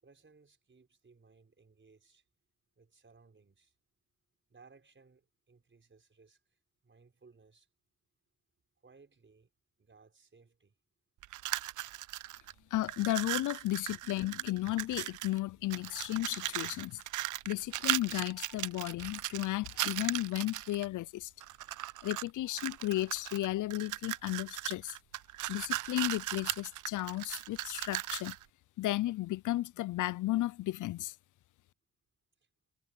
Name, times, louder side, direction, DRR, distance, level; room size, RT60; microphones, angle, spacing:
voice 1, 0.0-2.2 2.8-3.7 4.5-7.7 8.8-9.5 9.8-10.7, right 4 dB, 35° right, 5.1 m, -62 dB
sound 1, 11.2-12.5 12.8-15.4 15.7-20.8 21.4-22.3 22.6-28.4, right 15 dB, 65° right, 0.5 m, -38 dB
voice 2, 12.7-17.0 17.5-21.3 22.0-25.0 25.5-28.4 28.8-31.2, left 16 dB, 70° left, 0.5 m, -34 dB
supercardioid pair, 60°, 32 cm